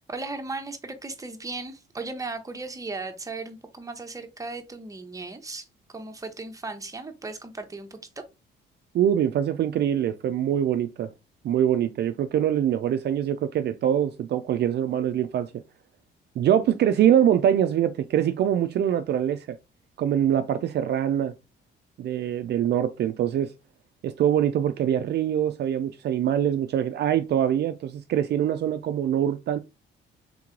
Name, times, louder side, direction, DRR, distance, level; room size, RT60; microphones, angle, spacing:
voice 1, 0.1-8.2, right 3 dB, 15° right, 0.8 m, -36 dB
voice 2, 8.9-11.1 11.4-15.5 16.4-19.6 20.0-21.3 22.0-23.5 24.0-29.6, right 10 dB, 55° right, 0.4 m, -24 dB
3.7 x 3.0 x 3.7 m
cardioid pair, 90°, 20 cm